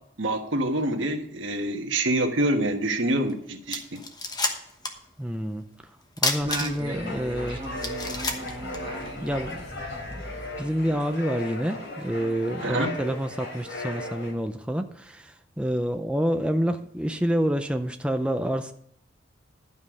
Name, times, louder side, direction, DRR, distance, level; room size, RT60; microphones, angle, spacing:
voice 1, 0.2-4.0 12.6-12.9, right 1 dB, 75° right, 5 dB, 1.4 m, -26 dB
sound 1, 3.3-3.4 3.7-5.1 5.3-5.4 6.2-7.0 7.5-7.6 7.8-9.3, left 3 dB, 20° left, 1.1 m, -29 dB
voice 2, 5.2-5.7 6.2-7.6 8.6-8.7 9.2-9.6 10.1-10.2 10.6-18.7, equal, 5° right, 6 dB, 0.5 m, -28 dB
Singing, 6.4-11.2, right 1 dB, 25° right, 1.2 m, -37 dB
sound 2, 6.9-14.3, left 2 dB, 70° left, 3.6 m, -37 dB
12.0 x 5.4 x 6.3 m, 0.70 s
head